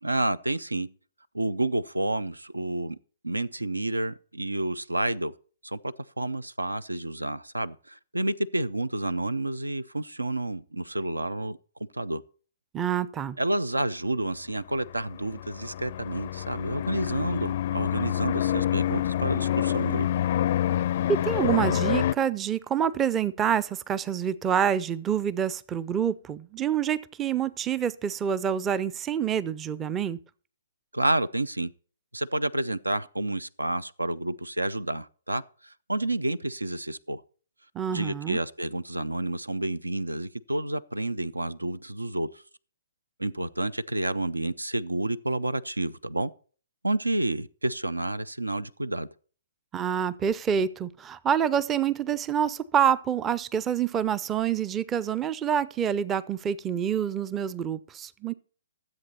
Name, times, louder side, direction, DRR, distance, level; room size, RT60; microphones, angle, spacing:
voice 1, 0.0-0.9 1.3-3.0 3.2-5.3 5.6-11.6 11.9-12.2 13.4-20.1 30.9-31.7 32.1-37.2 37.9-42.4 43.2-46.3 46.8-49.1, right 2 dB, 85° right, 0.5 m, -30 dB
voice 2, 12.7-13.4 21.1-30.2 37.7-38.4 49.7-58.3, right 8 dB, 15° right, 0.5 m, -27 dB
sound 1, 14.8-22.1, left 11 dB, 45° left, 0.4 m, -27 dB
13.5 x 7.9 x 4.2 m
figure-of-eight pair, 130°, 0 cm